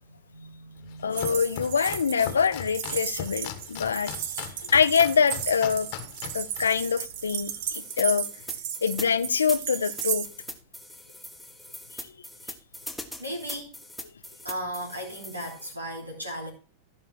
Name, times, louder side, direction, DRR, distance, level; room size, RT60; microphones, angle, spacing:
voice 1, 0.0-1.2 13.2-13.8 14.4-16.5, equal, 85° right, 3.3 m, -36 dB
Domestic sounds home sounds, 0.8-7.7, left 10 dB, 45° left, 1.4 m, -40 dB
voice 2, 1.0-4.1 4.7-5.9 6.3-8.3 8.8-10.3, left 6 dB, 70° left, 0.7 m, -24 dB
sound 1, 1.1-10.3, right 10 dB, 50° right, 1.0 m, -35 dB
sound 2, 7.7-15.7, left 1 dB, ahead, 1.4 m, -41 dB
15.0 x 5.5 x 4.6 m
figure-of-eight pair, 90°, 0 cm